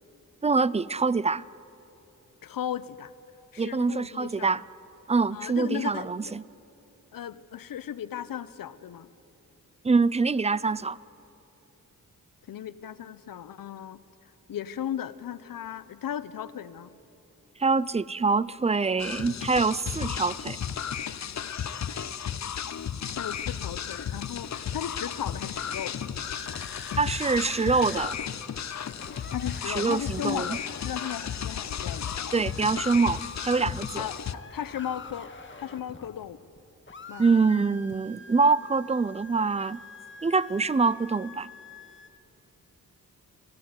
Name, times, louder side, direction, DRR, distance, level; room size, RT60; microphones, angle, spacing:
voice 1, 0.4-1.4 3.6-4.6 5.1-6.4 9.8-11.0 17.6-20.6 27.0-28.2 29.7-30.5 32.3-34.0 37.2-39.8 40.2-41.5, right 4 dB, 20° right, 20 dB, 0.4 m, -25 dB
voice 2, 2.4-3.1 3.5-4.6 5.3-6.4 7.1-9.1 12.5-14.0 14.5-16.9 23.2-26.0 29.3-32.3 34.0-35.3 35.6-36.4 37.1-37.2, left 10 dB, 80° left, 15 dB, 0.9 m, -36 dB
sound 1, 19.0-34.3, left 8 dB, 55° left, 0.7 m, -34 dB
sound 2, 26.1-28.1 28.4-28.5 28.7-36.6 36.9-42.1, left 3 dB, 35° left, 1.8 m, -46 dB
22.5 x 15.0 x 9.6 m, 2.9 s
cardioid pair, 65°, 34 cm